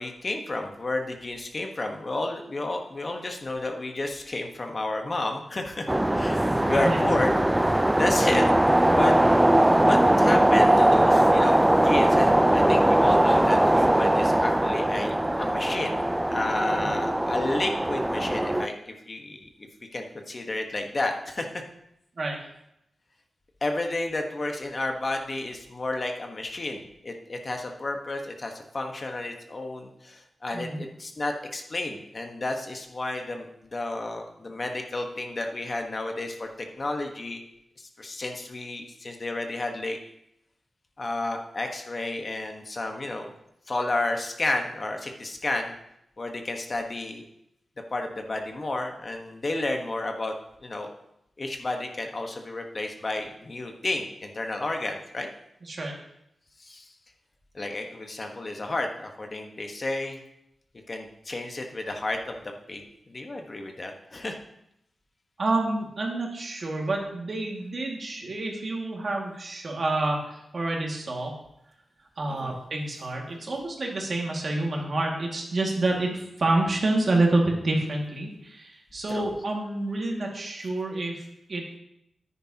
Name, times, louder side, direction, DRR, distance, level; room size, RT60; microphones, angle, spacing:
voice 1, 0.0-5.9 6.1-7.3 7.9-8.5 8.9-9.2 9.8-16.0 16.3-21.5 23.6-37.4 37.8-40.0 41.0-43.3 43.7-45.7 46.2-47.3 47.9-50.3 50.6-50.9 51.4-55.3 56.6-56.9 57.5-60.2 60.9-64.4 72.3-72.6 79.1-79.3, left 2 dB, 45° left, 4 dB, 1.3 m, -31 dB
sound 1, 5.9-18.7, right 1 dB, 15° right, 0.4 m, -21 dB
voice 2, 30.5-30.8 55.6-55.9 65.4-71.4 72.2-81.8, right 2 dB, 55° right, 0 dB, 2.1 m, -28 dB
9.7 x 9.6 x 2.9 m, 0.80 s
cardioid pair, 50°, 0 cm